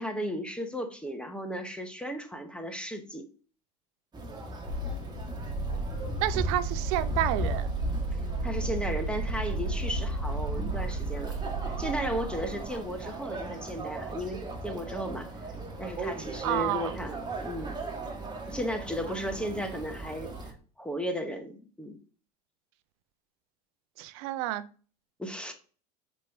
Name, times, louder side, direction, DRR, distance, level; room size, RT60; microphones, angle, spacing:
voice 1, 0.0-3.3 8.4-11.4 11.8-15.3 15.8-17.8 18.5-20.3 20.8-22.0 25.2-25.5, equal, 5° left, 6 dB, 0.8 m, -35 dB
sound 1, 4.1-20.5, right 2 dB, 20° right, 1.4 m, -38 dB
sound 2, 4.7-12.9, right 2 dB, 60° left, 1.6 m, -33 dB
voice 2, 6.2-7.7 16.4-16.9 24.0-24.6, right 14 dB, 60° right, 13 dB, 0.5 m, -29 dB
5.0 x 2.9 x 3.5 m, 0.38 s
hypercardioid pair, 80°, 20 cm